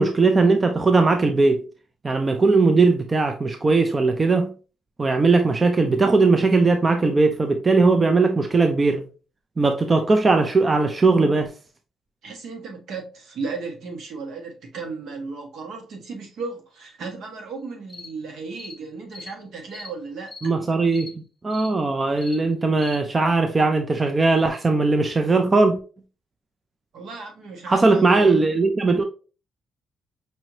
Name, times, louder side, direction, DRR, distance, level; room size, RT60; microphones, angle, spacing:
voice 1, 0.0-1.6 2.0-4.5 5.0-9.0 9.6-11.5 20.4-25.8 27.7-29.0, right 3 dB, 30° right, 0.5 m, -19 dB
voice 2, 12.2-20.3 26.9-28.3, right 4 dB, 70° right, 1.4 m, -35 dB
sound 1, 17.9-18.1 18.6-18.8 19.1-19.3 19.7-19.9 20.3-20.5 20.9-21.1 21.5-21.7 22.2-22.4 22.8-23.0, left 4 dB, 25° left, 1.4 m, -40 dB
5.3 x 3.0 x 2.7 m
cardioid pair, 90°, 0 cm